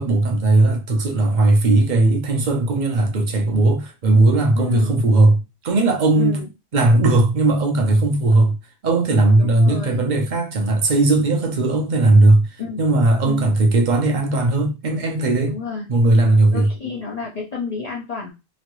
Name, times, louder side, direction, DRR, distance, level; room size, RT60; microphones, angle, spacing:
voice 1, 0.0-5.4 5.6-6.4 6.7-8.5 8.8-15.6 15.9-16.7, right 2 dB, 50° right, 0.8 m, -17 dB
voice 2, 4.6-5.0 6.1-6.5 9.3-10.0 12.6-12.8 13.2-13.5 15.4-15.9 16.5-18.3, left 5 dB, 45° left, 0.7 m, -30 dB
3.0 x 2.8 x 3.0 m
omnidirectional pair, 1.0 m